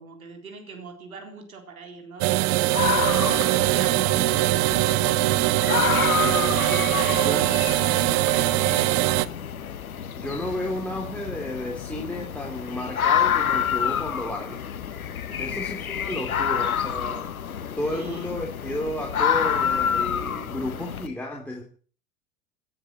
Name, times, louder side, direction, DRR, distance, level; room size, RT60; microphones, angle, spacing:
voice 1, 0.0-6.2 6.5-9.4 15.3-15.7 16.0-16.4 17.9-18.4, right 4 dB, 85° right, 4.1 m, -41 dB
sound 1, 2.2-9.3, right 19 dB, 50° right, 1.0 m, -22 dB
sound 2, 2.7-21.1, left 8 dB, 85° left, 1.2 m, -28 dB
voice 2, 6.2-6.6 7.2-7.5 10.2-14.6 15.4-17.3 17.8-21.6, left 1 dB, 5° left, 3.5 m, -32 dB
18.5 x 9.7 x 7.4 m
hypercardioid pair, 85°, 41 cm